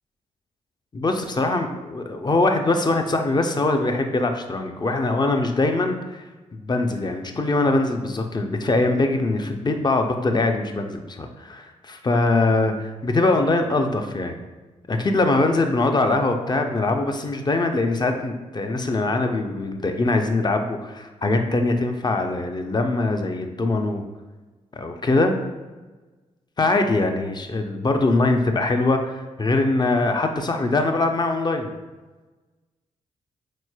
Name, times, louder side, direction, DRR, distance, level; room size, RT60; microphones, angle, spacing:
voice 1, 0.9-14.4 14.9-24.0 24.7-25.3 26.6-31.7, left 2 dB, 30° left, 5 dB, 0.5 m, -22 dB
3.9 x 3.0 x 2.2 m, 1.2 s
hypercardioid pair, 40°, 15 cm